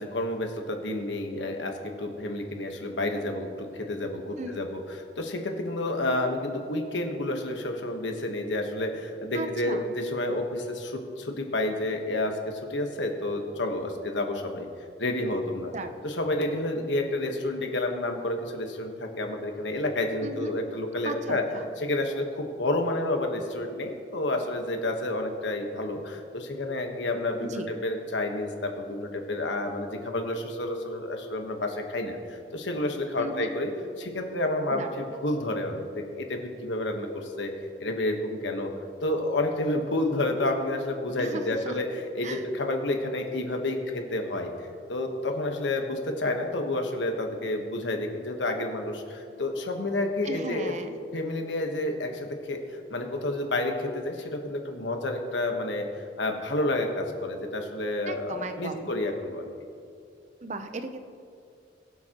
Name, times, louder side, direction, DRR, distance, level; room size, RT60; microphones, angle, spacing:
voice 1, 0.0-14.7 15.0-15.7 16.0-21.4 21.8-33.7 34.0-37.5 37.8-38.7 39.0-50.7 51.1-55.9 56.2-59.4, left 1 dB, 90° left, 4 dB, 1.3 m, -30 dB
voice 2, 9.3-9.9 15.7-16.0 20.2-20.5 21.0-21.7 27.4-27.7 33.2-33.5 34.7-34.9 41.2-41.8 42.2-42.4 50.2-51.0 58.1-58.9 60.4-61.0, right 2 dB, 40° right, 8 dB, 0.6 m, -36 dB
21.5 x 7.3 x 3.0 m, 2.4 s
head